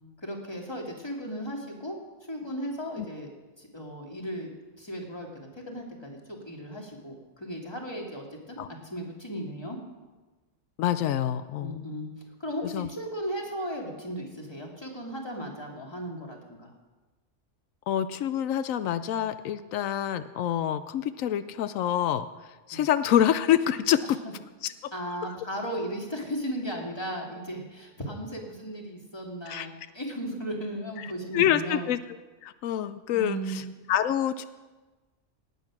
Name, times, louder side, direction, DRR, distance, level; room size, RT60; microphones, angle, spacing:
voice 1, 0.2-2.0 2.3-3.3 3.6-4.5 4.8-5.3 5.5-9.8 11.6-12.1 12.4-16.7 22.7-22.8 24.9-31.9 33.1-33.7, equal, 20° left, 0 dB, 2.3 m, -36 dB
voice 2, 10.8-11.8 12.6-12.9 17.9-22.3 22.7-24.2 24.6-24.9 25.2-25.4 29.5-29.7 31.0-32.0 32.4-34.5, left 11 dB, 90° left, 13 dB, 1.0 m, -27 dB
18.0 x 8.2 x 6.0 m, 1.2 s
omnidirectional pair, 1.3 m